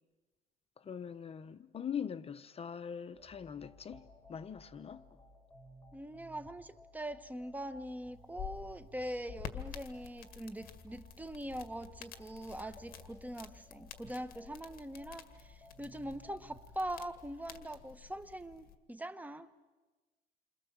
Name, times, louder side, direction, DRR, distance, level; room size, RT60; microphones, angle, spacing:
voice 1, 0.8-5.2, left 7 dB, 35° left, 0.8 m, -42 dB
sound 1, 3.1-17.6, equal, 10° left, 5.1 m, -59 dB
voice 2, 5.9-19.5, right 1 dB, 10° right, 1.2 m, -43 dB
sound 2, 8.1-18.8, left 9 dB, 60° left, 2.0 m, -50 dB
29.0 x 25.5 x 7.4 m
cardioid pair, 110°, 17 cm